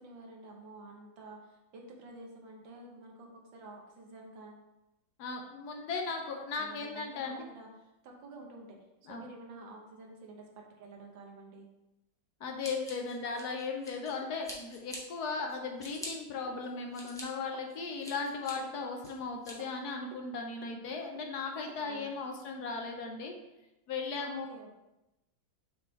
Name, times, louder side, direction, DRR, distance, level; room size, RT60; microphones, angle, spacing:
voice 1, 0.0-4.7 6.6-8.7 9.1-11.7 21.8-22.1 24.2-24.8, right 2 dB, 85° right, 0 dB, 1.8 m, -50 dB
voice 2, 5.2-7.4 9.1-9.2 12.4-23.3 23.9-24.5, left 4 dB, 70° left, 2 dB, 1.1 m, -37 dB
Scissors, 12.6-14.1 14.4-15.0 15.5-16.1 16.6-17.2 17.7-18.5 19.0-19.5, equal, ahead, 0.9 m, -45 dB
sound 1, 14.2-14.3 15.4-16.1 16.5-16.7 17.0-17.1 17.5-17.6 18.1-18.2 18.6-19.2 19.6-19.7 20.1-20.2 20.6-20.8 21.2-21.3 21.7-21.8 22.4-22.5, right 4 dB, 65° right, 0.9 m, -53 dB
6.5 x 3.6 x 3.9 m, 0.96 s
omnidirectional pair, 2.0 m